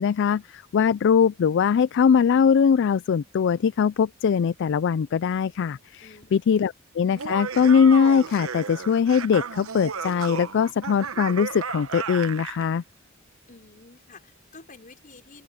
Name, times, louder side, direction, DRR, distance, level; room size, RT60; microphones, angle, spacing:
voice 1, 0.0-6.0 6.3-12.8, left 6 dB, 60° left, 0.3 m, -21 dB
voice 2, 6.0-6.4 13.5-15.4, left 3 dB, 40° left, 4.9 m, -49 dB
Laughter, 7.1-12.7, right 6 dB, 80° right, 1.1 m, -34 dB
open air
head